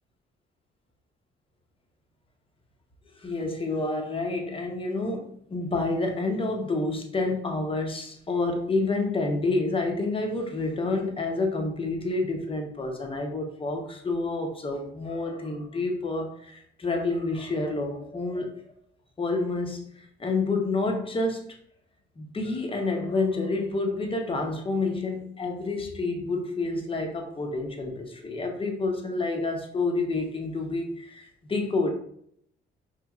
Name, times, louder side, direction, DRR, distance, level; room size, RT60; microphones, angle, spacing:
voice 1, 3.2-18.6 19.2-19.9 20.2-21.5 22.2-31.9, left 3 dB, 25° left, 2 dB, 0.8 m, -29 dB
4.7 x 3.0 x 2.4 m, 0.68 s
cardioid pair, 90°, 20 cm